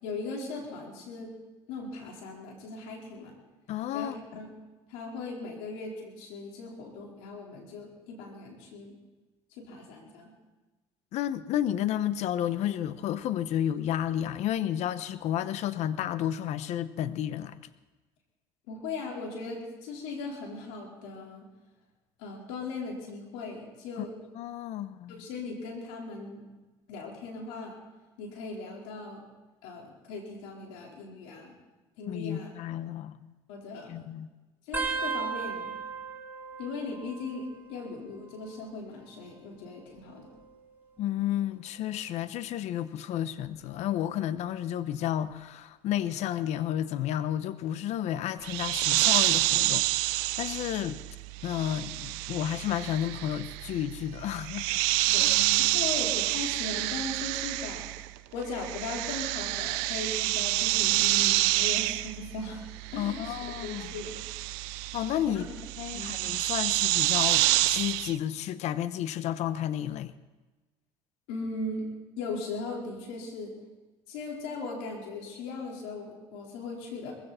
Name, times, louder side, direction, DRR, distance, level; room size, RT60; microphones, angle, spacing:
voice 1, 0.0-1.3 1.7-3.3 3.9-4.5 4.9-9.0 9.5-10.3 18.7-21.5 22.2-24.1 25.2-26.4 26.9-27.8 28.2-29.2 29.6-31.5 32.0-32.5 33.5-34.1 34.7-35.8 36.6-40.4 55.1-58.0 58.3-62.6 62.9-63.4 63.6-64.3 65.2-65.4 65.9-66.2 71.3-71.9 72.2-73.5 74.1-77.1, left 3 dB, 85° left, 4.4 m, -38 dB
voice 2, 3.7-4.1 11.1-17.5 24.0-24.1 24.3-25.2 32.1-33.3 33.9-34.3 41.0-51.0 51.4-54.8 55.2-55.4 63.0-63.9 64.9-65.5 65.8-70.1, left 11 dB, 65° left, 0.9 m, -31 dB
sound 1, 34.7-37.9 38.2-38.8 39.8-41.3 41.9-42.2 43.4-43.8 45.3-45.4, right 5 dB, 15° right, 3.7 m, -37 dB
sound 2, 48.4-58.2 58.4-68.1, right 19 dB, 85° right, 0.5 m, -28 dB
20.5 x 16.0 x 4.4 m
supercardioid pair, 80°, 12 cm